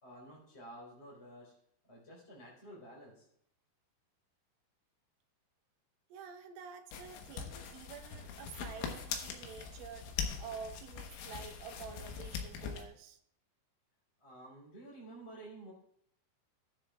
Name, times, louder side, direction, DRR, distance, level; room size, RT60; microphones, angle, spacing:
voice 1, 0.0-1.5 1.9-3.2 14.2-15.7, right 1 dB, 15° left, -5 dB, 3.7 m, -51 dB
voice 2, 6.1-13.2, right 7 dB, 80° right, 4 dB, 3.3 m, -49 dB
sound 1, 6.9-12.8, left 7 dB, 85° left, 3.6 m, -42 dB
20.0 x 7.6 x 2.4 m, 0.71 s
omnidirectional pair, 5.5 m